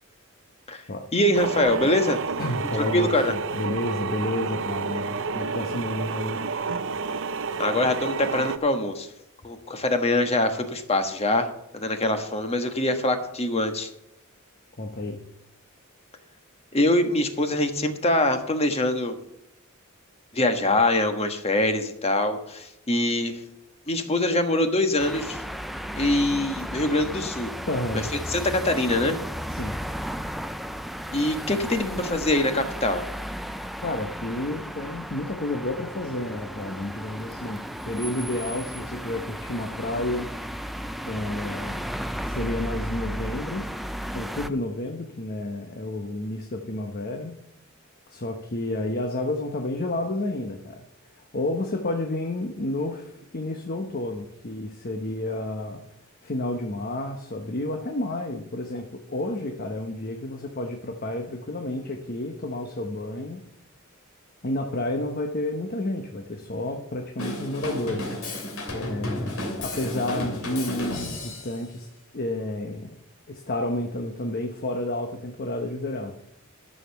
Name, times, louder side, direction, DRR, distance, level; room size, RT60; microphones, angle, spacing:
voice 1, 1.1-2.2 2.9-3.3 7.6-9.1 9.4-13.9 16.7-19.2 20.3-23.4 23.9-25.4 25.9-27.5 27.9-28.0 28.3-29.2 31.1-33.0, left 1 dB, 30° left, 6 dB, 1.3 m, -24 dB
sound 1, 1.3-8.6, right 4 dB, 65° right, 0.7 m, -30 dB
voice 2, 2.4-6.4 14.8-15.2 27.7-28.1 29.5-29.8 33.8-37.6 37.9-40.3 41.0-42.0 42.3-43.7 44.1-47.3 48.1-50.8 51.2-55.8 56.2-63.4 64.4-68.4 68.7-71.9 72.1-73.0 73.3-76.1, left 1 dB, 45° left, 3 dB, 1.0 m, -30 dB
sound 2, 25.0-44.5, equal, ahead, 0.5 m, -34 dB
Drum kit / Drum, 67.2-71.6, left 1 dB, 75° left, 2.9 m, -33 dB
12.5 x 6.6 x 6.9 m, 0.80 s
head